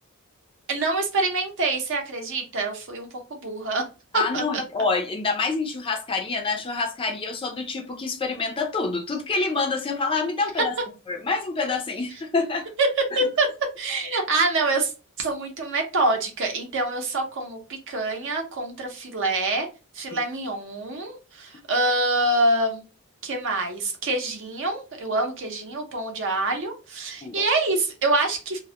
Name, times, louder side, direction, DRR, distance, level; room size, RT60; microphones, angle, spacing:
voice 1, 0.7-3.8 4.1-4.6 12.8-12.9 13.1-13.5 13.8-14.9 15.2-19.7 19.9-22.8 23.2-28.6, right 2 dB, 60° right, 0.6 m, -26 dB
voice 2, 4.1-10.7 11.1-12.6 27.2-27.4, left 4 dB, 25° left, 0.3 m, -27 dB
2.2 x 2.0 x 2.7 m
head